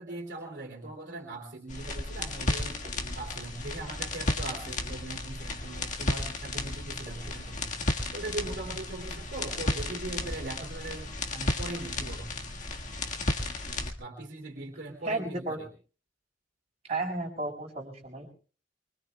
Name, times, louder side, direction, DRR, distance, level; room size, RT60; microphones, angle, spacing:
voice 1, 0.0-2.8 3.1-7.8 8.1-12.3 14.0-15.7, right 2 dB, 70° right, 0 dB, 3.0 m, -40 dB
sound 1, 1.7-13.9, left 2 dB, 45° left, 1.7 m, -33 dB
voice 2, 15.0-15.6 16.9-18.3, right 2 dB, 35° right, -1 dB, 5.2 m, -33 dB
24.5 x 24.0 x 2.3 m, 0.38 s
head